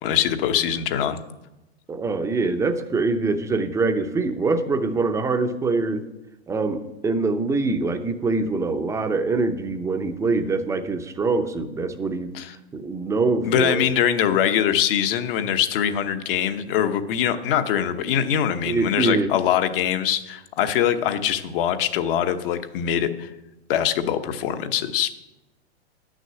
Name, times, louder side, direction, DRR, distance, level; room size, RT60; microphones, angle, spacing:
voice 1, 0.0-1.2 12.3-12.5 13.4-23.3 23.7-25.1, left 9 dB, 55° left, 8 dB, 1.1 m, -23 dB
voice 2, 1.9-6.0 6.5-12.3 12.7-13.9 18.7-19.3, right 3 dB, 10° right, 8 dB, 0.6 m, -24 dB
10.0 x 6.3 x 7.9 m, 0.98 s
hypercardioid pair, 135°, 33 cm